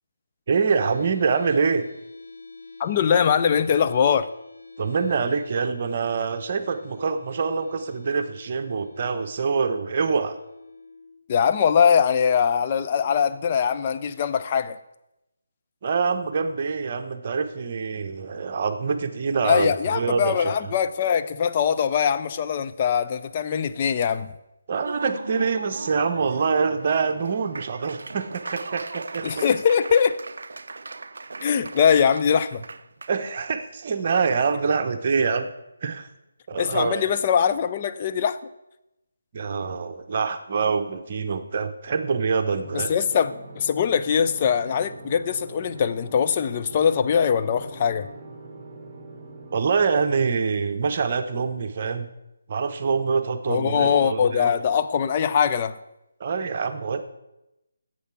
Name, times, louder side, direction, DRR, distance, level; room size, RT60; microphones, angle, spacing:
voice 1, 0.5-1.9 4.8-10.4 15.8-20.5 24.7-29.4 33.1-35.5 35.8-36.1 36.5-37.0 39.3-42.9 49.5-52.1 52.5-54.5 56.2-57.1, right 5 dB, 40° right, 7 dB, 0.9 m, -25 dB
sound 1, 0.7-14.6, left 3 dB, 80° left, 2.8 m, -47 dB
voice 2, 2.8-4.3 11.3-14.8 19.4-24.3 29.2-30.2 31.4-32.6 36.6-38.4 42.7-48.1 53.5-55.8, left 7 dB, 30° left, 10 dB, 0.5 m, -22 dB
Laughter / Applause, 24.7-33.1, right 3 dB, 60° right, 0.5 m, -38 dB
sound 2, 42.6-49.7, right 2 dB, 15° right, 1.8 m, -43 dB
9.9 x 7.6 x 6.0 m, 0.92 s
figure-of-eight pair, 150°, 0 cm